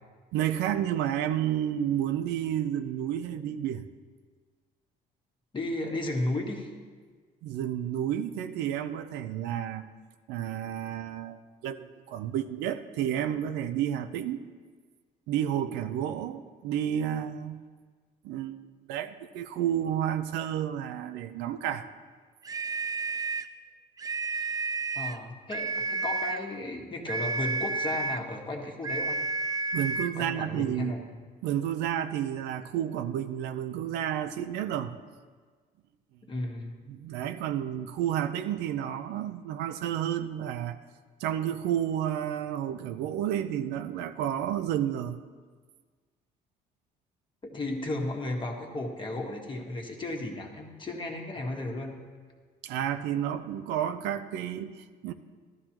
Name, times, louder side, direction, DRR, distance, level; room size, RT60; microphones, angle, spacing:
voice 1, 0.3-3.8 7.4-9.8 10.3-14.4 15.3-17.6 18.2-18.6 18.9-21.9 29.7-30.9 31.4-35.0 36.9-40.8 41.2-45.2 52.6-55.1, right 10 dB, 90° right, 9 dB, 0.6 m, -31 dB
voice 2, 5.5-6.7 24.9-29.2 30.1-31.0 36.3-36.7 47.4-52.0, left 2 dB, 30° left, 1 dB, 1.5 m, -34 dB
sound 1, 22.4-23.5 24.0-25.2 25.5-26.5 27.1-28.3 28.8-30.2, right 3 dB, 20° right, 0.4 m, -31 dB
14.0 x 12.0 x 3.0 m, 1.5 s
cardioid pair, 110°, 17 cm